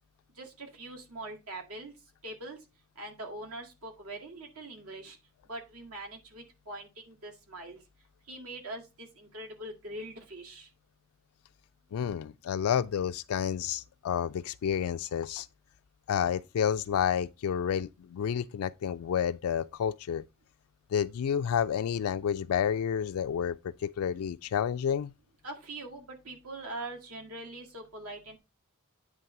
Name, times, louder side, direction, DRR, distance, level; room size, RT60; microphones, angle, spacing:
voice 1, 0.4-1.9 2.2-2.6 3.0-5.2 5.5-7.8 8.3-10.7 25.4-28.4, right 2 dB, 75° right, 2.1 m, -43 dB
voice 2, 11.9-15.5 16.1-20.2 20.9-25.1, left 8 dB, 70° left, 0.3 m, -30 dB
9.2 x 3.3 x 5.7 m
head